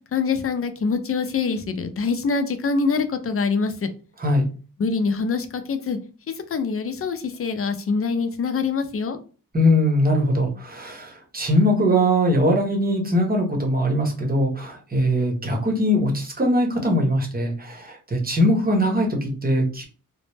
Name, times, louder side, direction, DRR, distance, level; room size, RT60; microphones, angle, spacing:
voice 1, 0.1-3.9 4.8-6.0 6.5-9.2, left 4 dB, 40° left, 9 dB, 0.5 m, -24 dB
voice 2, 9.5-19.8, equal, 25° right, 1 dB, 0.8 m, -21 dB
2.0 x 2.0 x 3.2 m, 0.37 s
cardioid pair, 65°, 34 cm